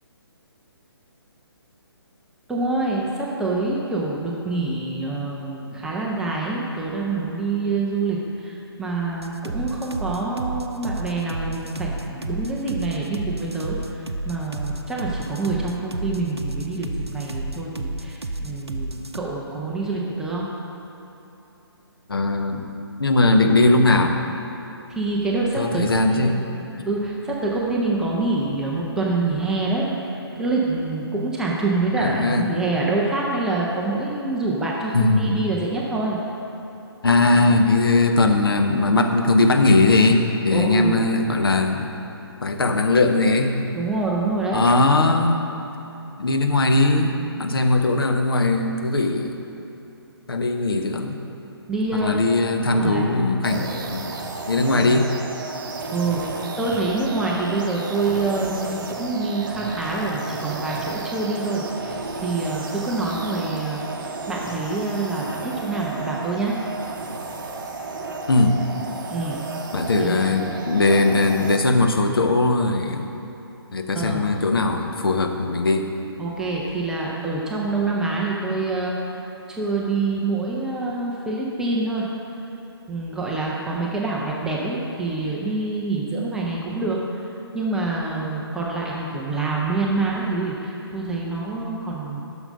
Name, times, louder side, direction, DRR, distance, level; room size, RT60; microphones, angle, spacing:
voice 1, 2.5-20.5 24.9-25.8 26.1-36.2 40.5-41.1 43.8-44.6 51.7-52.2 52.5-53.1 54.7-54.9 55.9-66.6 69.1-69.4 70.0-70.3 73.9-74.3 76.2-79.2 79.5-82.1 82.9-87.3 87.5-92.2, right 3 dB, 5° right, -4 dB, 0.5 m, -26 dB
sound 1, 9.2-19.2, right 2 dB, 80° right, 0.6 m, -31 dB
voice 2, 22.1-22.7 23.0-24.2 25.6-26.4 32.0-32.4 34.9-35.4 37.0-41.9 42.4-43.6 44.5-45.5 46.2-49.4 50.3-51.2 52.0-54.1 54.5-55.1 68.3-68.6 69.7-73.1 73.7-75.9, left 2 dB, 60° left, 4 dB, 0.8 m, -19 dB
sound 2, 53.4-71.6, right 3 dB, 50° right, 0.8 m, -33 dB
9.0 x 6.4 x 5.2 m, 3.0 s
figure-of-eight pair, 140°, 13 cm